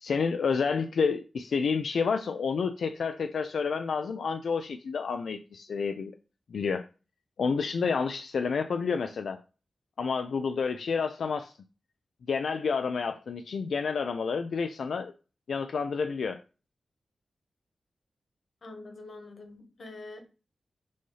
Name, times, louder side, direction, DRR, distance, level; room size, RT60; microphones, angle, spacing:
voice 1, 0.0-6.1 6.5-6.8 7.4-9.4 10.0-11.5 12.3-15.1 15.5-16.4, left 5 dB, 90° left, 0.4 m, -29 dB
voice 2, 18.6-20.2, left 2 dB, 60° left, 1.5 m, -45 dB
6.2 x 2.8 x 5.5 m
wide cardioid pair, 140°, 0 cm